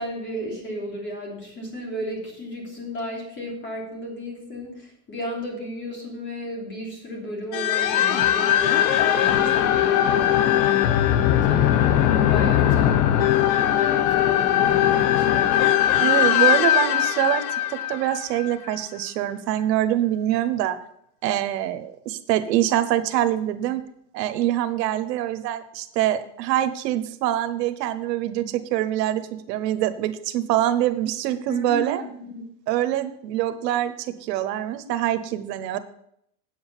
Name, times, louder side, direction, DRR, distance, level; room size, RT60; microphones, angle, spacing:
voice 1, 0.0-15.6 31.5-32.5, left 1 dB, 25° left, -1 dB, 3.1 m, -34 dB
sound 1, 7.5-18.7, left 11 dB, 85° left, 1.0 m, -20 dB
voice 2, 16.0-20.8 21.2-23.8 24.1-29.2 29.5-32.0 32.7-35.8, right 12 dB, 85° right, 11 dB, 1.0 m, -24 dB
8.7 x 7.9 x 5.6 m, 0.73 s
supercardioid pair, 150°, 48 cm